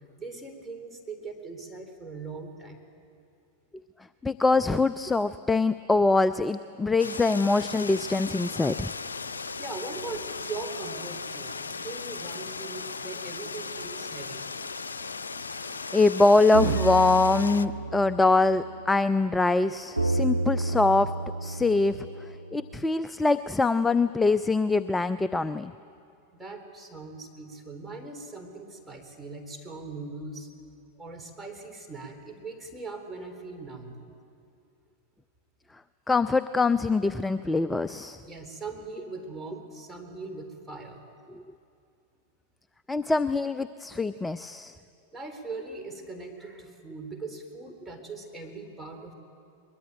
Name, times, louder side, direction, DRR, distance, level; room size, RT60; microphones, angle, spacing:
voice 1, 0.2-2.8 9.6-14.4 16.7-17.1 26.3-30.5 31.0-34.0 38.2-41.1 45.1-49.1, right 3 dB, 10° right, 3 dB, 3.9 m, -40 dB
voice 2, 4.2-8.9 15.9-21.1 21.4-22.1 22.5-25.7 36.1-38.2 42.9-44.7, left 3 dB, 10° left, 14 dB, 0.5 m, -23 dB
sound 1, 7.0-17.7, left 4 dB, 75° left, 0.6 m, -37 dB
sound 2, 16.3-19.3 20.0-22.8, right 2 dB, 85° right, 0.8 m, -31 dB
23.0 x 21.0 x 9.0 m, 2.6 s
figure-of-eight pair, 90°, 0 cm